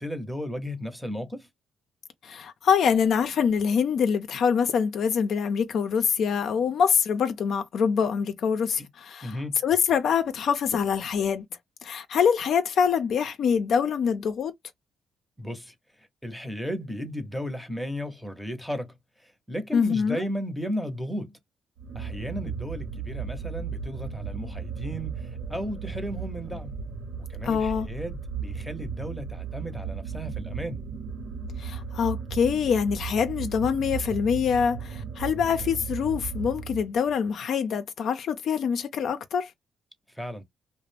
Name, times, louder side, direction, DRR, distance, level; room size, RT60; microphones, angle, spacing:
voice 1, 0.0-1.5 9.2-9.6 15.4-18.9 19.2-21.4 21.9-26.8 27.3-30.8 40.1-40.4, equal, ahead, 0.7 m, -34 dB
voice 2, 2.2-9.4 9.6-11.4 11.8-14.5 19.7-20.2 27.4-27.9 31.6-39.5, left 7 dB, 65° left, 0.5 m, -25 dB
sound 1, 21.8-37.1, right 6 dB, 80° right, 0.7 m, -35 dB
2.4 x 2.0 x 3.3 m
cardioid pair, 90°, 0 cm